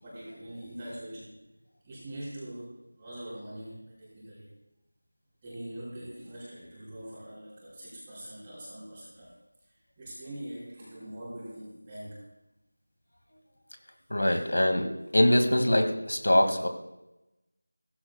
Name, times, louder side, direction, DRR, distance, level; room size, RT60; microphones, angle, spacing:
voice 1, 0.0-1.3 1.8-4.5 5.4-9.4 10.0-12.3 14.3-14.4, right 1 dB, 15° right, -13 dB, 3.2 m, -43 dB
voice 2, 14.1-16.7, left 1 dB, 80° left, 5 dB, 2.2 m, -23 dB
17.0 x 15.0 x 2.4 m, 0.94 s
figure-of-eight pair, 175°, 0 cm